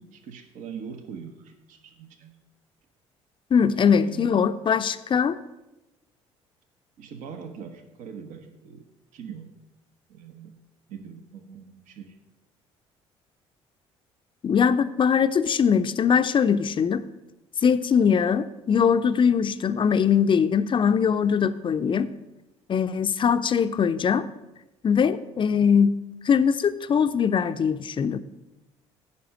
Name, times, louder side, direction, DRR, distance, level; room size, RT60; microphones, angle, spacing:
voice 1, 0.0-2.4 3.7-4.4 7.0-8.8 9.1-9.6 10.1-10.6 10.9-12.2, right 7 dB, 60° right, 7 dB, 1.1 m, -41 dB
voice 2, 3.5-5.4 14.4-17.0 17.6-22.1 22.7-24.2 24.8-28.2, left 7 dB, 35° left, 12 dB, 0.5 m, -21 dB
9.7 x 5.5 x 7.5 m, 1.0 s
figure-of-eight pair, 55°, 15 cm